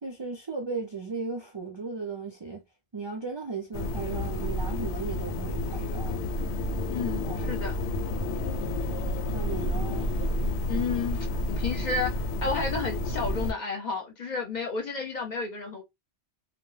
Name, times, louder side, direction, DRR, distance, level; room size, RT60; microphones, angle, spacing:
voice 1, 0.0-2.6 2.9-6.2 7.3-7.5 9.3-10.1, right 4 dB, 50° right, 0.3 m, -36 dB
sound 1, 3.7-13.5, left 1 dB, 80° left, 0.9 m, -30 dB
voice 2, 6.9-7.8 10.7-15.8, left 4 dB, 50° left, 0.6 m, -32 dB
2.1 x 2.1 x 3.1 m
omnidirectional pair, 1.2 m